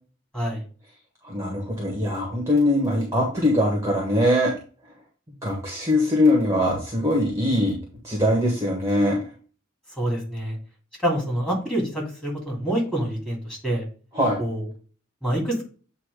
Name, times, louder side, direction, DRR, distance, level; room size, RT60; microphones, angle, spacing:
voice 1, 1.2-4.5 5.4-7.7 8.0-9.2 14.1-14.4, left 1 dB, 15° right, -1 dB, 1.6 m, -22 dB
voice 2, 10.0-10.5 11.0-13.9 14.4-14.6 15.2-15.6, right 1 dB, 5° left, -2 dB, 2.8 m, -26 dB
8.3 x 3.0 x 4.8 m, 0.39 s
head